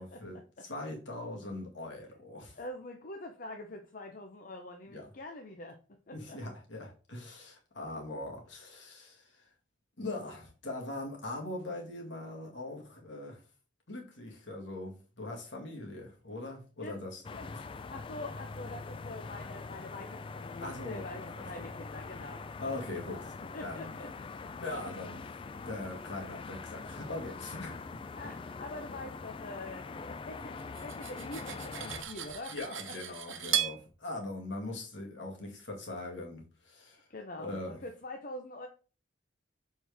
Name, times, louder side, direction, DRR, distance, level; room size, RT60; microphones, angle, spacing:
voice 1, 0.0-2.6 4.9-5.1 6.1-9.5 10.0-13.4 13.9-17.2 17.5-17.6 20.6-21.7 22.6-23.3 23.6-23.9 24.6-28.0 32.5-37.1 37.4-37.8, left 2 dB, 65° left, 1 dB, 1.9 m, -41 dB
voice 2, 2.6-5.8 6.1-6.4 16.8-17.0 17.3-22.4 23.0-23.2 23.5-24.7 28.1-32.9 33.3-33.6 37.1-38.7, left 2 dB, 45° left, 4 dB, 0.7 m, -45 dB
sound 1, 17.2-32.0, left 4 dB, 25° left, 0.3 m, -43 dB
Cutlery silverware, 30.6-33.8, right 9 dB, 85° right, 1.0 m, -36 dB
6.3 x 4.5 x 3.4 m, 0.35 s
head